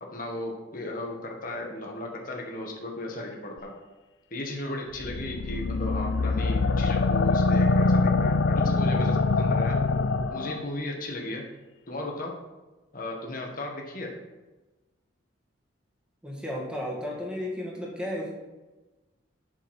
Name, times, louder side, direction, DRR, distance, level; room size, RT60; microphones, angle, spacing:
voice 1, 0.0-3.7 4.3-9.8 10.3-11.4 11.9-12.4 12.9-14.2, left 1 dB, 45° left, 0 dB, 1.7 m, -35 dB
sound 1, 5.0-10.6, left 3 dB, 65° left, 0.5 m, -24 dB
voice 2, 16.2-18.3, left 1 dB, 5° right, -3 dB, 2.0 m, -33 dB
10.5 x 6.7 x 4.5 m, 1.1 s
head